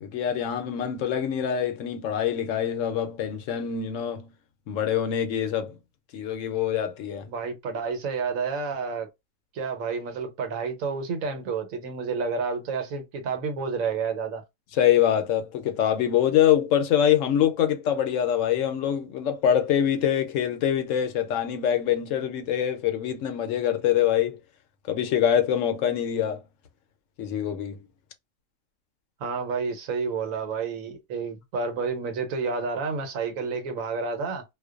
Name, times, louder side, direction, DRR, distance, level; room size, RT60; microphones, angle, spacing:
voice 1, 0.0-4.3 4.7-5.8 6.1-7.3 14.7-24.4 24.9-26.4 27.2-27.8, left 9 dB, 75° left, 0.9 m, -24 dB
voice 2, 7.3-9.1 9.5-14.4 29.2-34.4, right 5 dB, 85° right, 1.2 m, -30 dB
2.4 x 2.2 x 2.3 m
omnidirectional pair, 1.4 m